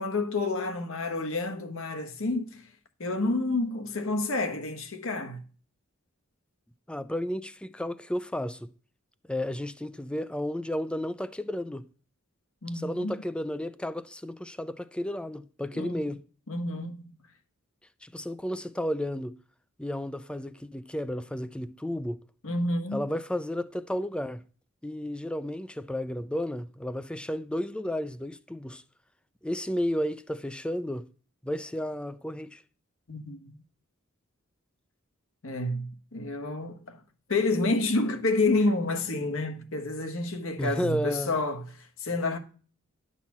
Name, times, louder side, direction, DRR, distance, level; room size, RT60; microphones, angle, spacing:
voice 1, 0.0-2.6 3.0-5.4 12.6-13.1 15.7-16.0 16.5-17.1 22.4-23.0 33.1-33.5 35.4-37.0 37.3-42.4, left 2 dB, 70° left, 1.2 m, -29 dB
voice 2, 6.9-8.7 9.3-11.8 12.7-16.2 18.0-19.4 19.8-22.2 22.9-24.4 24.8-28.8 29.4-31.0 31.4-32.6 40.6-41.3, left 1 dB, 5° left, 0.4 m, -32 dB
10.5 x 4.1 x 7.2 m
head